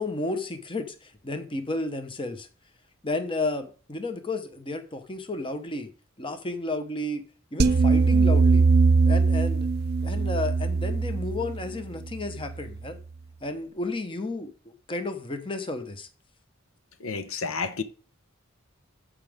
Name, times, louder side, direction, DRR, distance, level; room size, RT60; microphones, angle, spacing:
voice 1, 0.0-2.5 3.0-5.9 6.2-7.2 7.5-8.6 9.1-9.7 10.0-13.0 13.4-16.1, left 2 dB, 25° left, 1.0 m, -32 dB
sound 1, 7.6-12.8, right 4 dB, 50° right, 0.5 m, -22 dB
voice 2, 17.0-17.8, left 4 dB, 90° left, 0.9 m, -30 dB
13.0 x 4.9 x 3.6 m
head